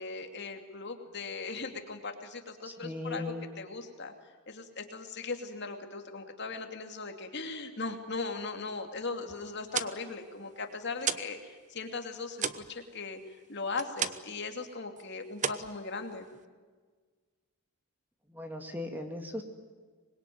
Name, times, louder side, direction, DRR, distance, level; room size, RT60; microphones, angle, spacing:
voice 1, 0.0-4.1 4.5-13.2 13.5-16.3, left 4 dB, 50° left, 5 dB, 2.7 m, -38 dB
voice 2, 2.8-3.5 18.3-19.4, left 1 dB, 10° right, 4 dB, 2.2 m, -37 dB
sound 1, 9.5-11.4 11.7-14.4 14.7-15.0 15.3-16.4, right 7 dB, 35° right, 1.0 m, -35 dB
25.0 x 21.5 x 9.4 m, 1.5 s
head